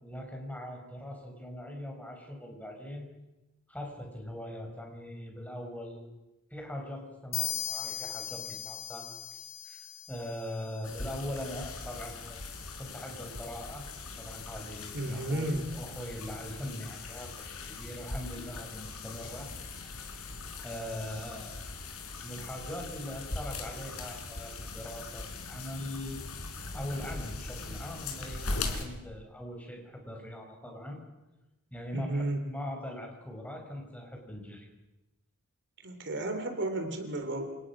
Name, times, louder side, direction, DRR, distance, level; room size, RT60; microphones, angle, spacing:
voice 1, 0.0-3.1 3.7-6.1 6.5-9.1 9.6-13.8 14.2-19.5 19.9-20.0 20.6-21.7 22.2-26.2 26.7-31.0 31.7-34.7, left 1 dB, 5° left, 1 dB, 6.1 m, -41 dB
sound 1, 7.3-10.9, left 12 dB, 45° left, 3.6 m, -38 dB
sound 2, 10.8-28.8, left 3 dB, 70° left, 4.7 m, -40 dB
voice 2, 14.9-15.7 31.9-32.4 35.8-37.5, right 1 dB, 55° right, 6 dB, 3.6 m, -33 dB
29.0 x 28.0 x 6.2 m, 1.0 s
head